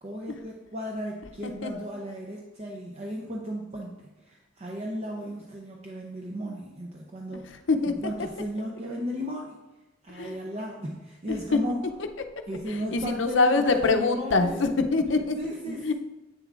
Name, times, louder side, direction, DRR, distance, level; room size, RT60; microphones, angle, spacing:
voice 1, 0.0-7.6 7.9-9.6 10.0-11.8 12.5-14.6 15.4-15.9, equal, 35° right, -1 dB, 0.6 m, -35 dB
voice 2, 11.3-11.6 12.7-15.4 15.6-15.9, left 3 dB, 70° left, 7 dB, 0.6 m, -24 dB
8.4 x 6.9 x 2.4 m, 1.1 s
head